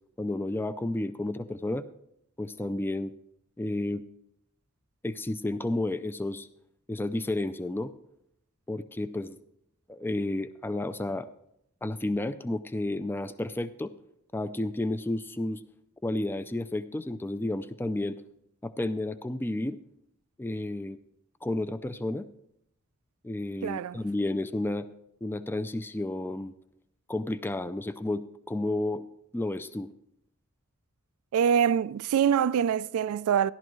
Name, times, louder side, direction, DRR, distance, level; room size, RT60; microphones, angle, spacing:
voice 1, 0.2-1.8 2.4-3.1 3.6-4.0 5.0-6.5 6.9-7.9 8.7-9.4 9.9-11.3 11.8-13.9 14.3-15.6 16.0-18.2 18.6-19.8 20.4-21.0 21.4-22.3 23.2-24.9 25.2-26.5 27.1-29.0 29.3-29.9, left 2 dB, 10° left, 0.3 m, -31 dB
voice 2, 23.6-24.0 31.3-33.5, right 8 dB, 80° right, 0.3 m, -24 dB
14.5 x 11.5 x 3.1 m
head